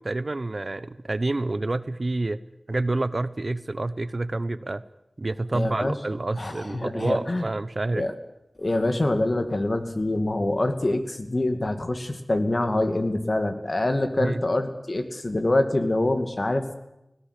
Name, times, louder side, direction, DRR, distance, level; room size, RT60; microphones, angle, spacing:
voice 1, 0.0-2.4 2.7-4.8 5.2-8.1 14.2-14.4, right 2 dB, 55° right, 15 dB, 0.9 m, -28 dB
voice 2, 5.5-5.9 6.3-7.5 7.9-8.1 8.6-16.7, left 1 dB, 50° left, 7 dB, 2.4 m, -25 dB
19.0 x 17.0 x 9.9 m, 0.87 s
wide cardioid pair, 60°, 0 cm